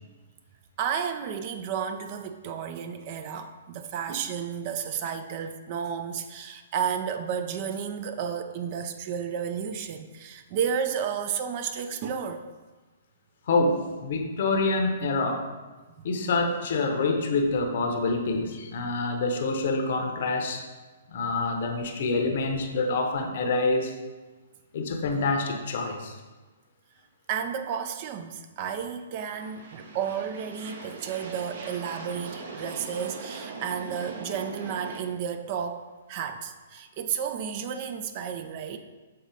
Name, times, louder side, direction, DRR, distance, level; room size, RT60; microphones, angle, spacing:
voice 1, 0.8-12.5 16.0-16.4 27.3-38.8, right 7 dB, 40° right, 8 dB, 0.4 m, -32 dB
voice 2, 13.5-15.5 16.0-20.6 21.1-24.0 24.7-26.2, left 3 dB, 55° left, 5 dB, 0.8 m, -26 dB
sound 1, 29.3-35.0, right 4 dB, 55° right, 0.9 m, -40 dB
6.6 x 4.0 x 3.8 m, 1.3 s
figure-of-eight pair, 120°, 0 cm